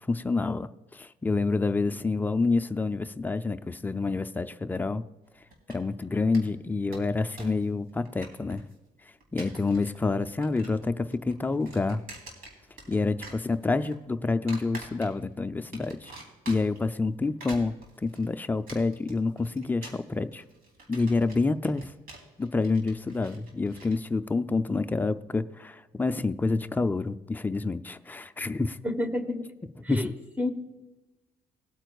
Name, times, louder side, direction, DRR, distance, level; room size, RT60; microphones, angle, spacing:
voice 1, 0.0-5.0 5.7-8.7 9.3-12.0 12.9-16.1 16.5-17.7 18.0-20.4 20.9-21.9 22.4-28.8 29.9-30.1, left 3 dB, 10° left, 10 dB, 0.3 m, -28 dB
sound 1, 5.5-6.0 6.3-6.4 6.7-7.6 7.9-8.7 9.2-10.0 10.2-10.9 11.1-13.0 13.2-13.9 14.5-15.3 15.7-16.8 17.2-23.9, right 2 dB, 70° right, 3.2 m, -46 dB
voice 2, 28.8-29.5 29.8-30.1 30.4-30.5, left 1 dB, 10° right, 6 dB, 1.1 m, -29 dB
19.5 x 9.0 x 2.3 m, 1.1 s
cardioid pair, 175°, 16 cm